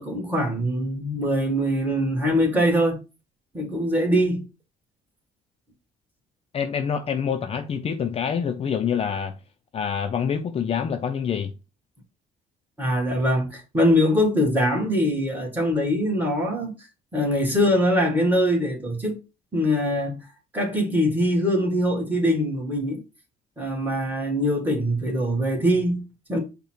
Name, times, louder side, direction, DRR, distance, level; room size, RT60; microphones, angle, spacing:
voice 1, 0.0-3.0 3.5-4.4 12.8-16.7 17.1-19.2 19.5-20.2 20.5-23.0 23.6-26.4, equal, 10° right, 1.6 m, -23 dB
voice 2, 6.5-9.3 9.7-11.5, left 7 dB, 35° left, 0.4 m, -26 dB
5.5 x 2.2 x 4.4 m
cardioid pair, 110°, 17 cm